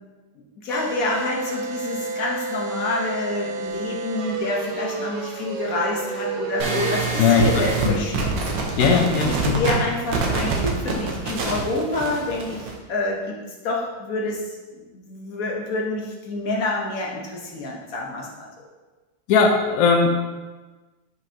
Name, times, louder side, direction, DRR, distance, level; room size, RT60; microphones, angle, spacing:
voice 1, 0.6-8.3 9.3-13.4 13.6-18.7, left 2 dB, 55° left, -2 dB, 1.3 m, -28 dB
sound 1, 0.7-7.1, right 4 dB, 70° right, 1.0 m, -30 dB
sound 2, 6.6-12.7, right 4 dB, 85° right, 1.7 m, -25 dB
voice 2, 8.8-9.6 19.3-20.2, left 5 dB, 75° left, 3 dB, 0.8 m, -18 dB
6.3 x 5.4 x 2.8 m, 1.3 s
omnidirectional pair, 2.0 m